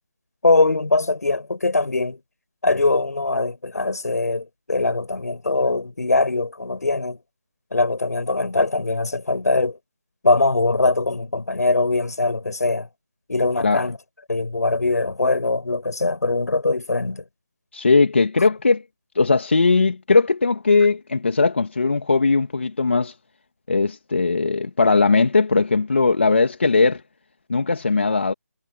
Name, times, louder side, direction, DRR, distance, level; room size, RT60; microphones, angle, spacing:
voice 1, 0.4-2.2 2.6-7.2 7.7-9.8 10.2-12.9 13.3-14.0 14.3-17.2, left 3 dB, 65° left, 5.2 m, -21 dB
voice 2, 17.7-18.8 19.2-23.1 23.7-27.0 27.5-28.3, left 4 dB, 40° left, 2.6 m, -19 dB
figure-of-eight pair, 175°, 9 cm